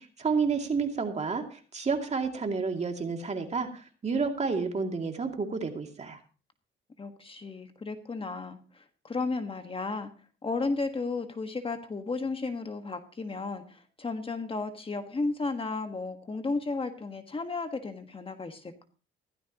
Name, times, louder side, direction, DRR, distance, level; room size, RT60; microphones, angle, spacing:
voice 1, 0.0-6.2, right 5 dB, 35° right, 4 dB, 2.5 m, -30 dB
voice 2, 7.0-10.1 10.4-18.8, left 3 dB, 25° left, 7 dB, 1.5 m, -34 dB
16.0 x 14.0 x 3.0 m, 0.35 s
cardioid pair, 90°, 20 cm